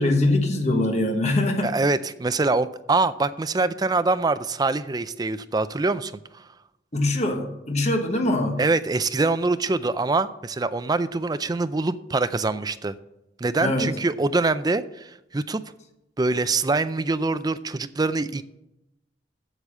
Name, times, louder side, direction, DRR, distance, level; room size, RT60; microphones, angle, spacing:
voice 1, 0.0-1.7 6.9-8.6 13.6-13.9, left 1 dB, 40° left, 3 dB, 1.3 m, -23 dB
voice 2, 1.6-6.2 8.6-13.0 13.4-15.6 16.2-18.4, right 3 dB, 20° right, 13 dB, 0.4 m, -24 dB
8.2 x 7.0 x 7.4 m, 0.88 s
head